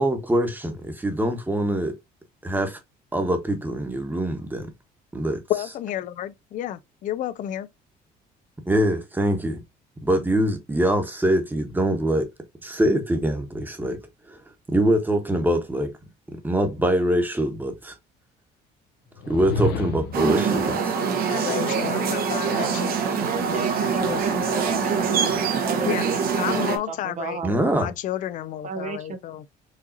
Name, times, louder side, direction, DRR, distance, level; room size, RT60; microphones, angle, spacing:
voice 1, 0.0-1.9 2.4-2.8 3.1-4.7 5.1-5.4 8.7-9.6 10.0-12.3 12.6-14.0 14.3-14.4 14.7-15.9 16.4-17.9 19.3-20.9 27.4-27.9, right 1 dB, 10° right, 1.1 m, -23 dB
voice 2, 5.5-7.7 21.3-23.0 23.5-23.7 24.0-24.2 25.9-26.1 26.3-29.4, left 12 dB, 50° left, 0.4 m, -31 dB
sound 1, 19.2-20.4, left 2 dB, 75° left, 0.7 m, -28 dB
sound 2, 20.1-26.8, right 6 dB, 65° right, 1.1 m, -24 dB
voice 3, 22.5-27.5 28.6-29.2, right 4 dB, 45° right, 0.7 m, -33 dB
4.8 x 2.7 x 2.7 m
cardioid pair, 110°, 17 cm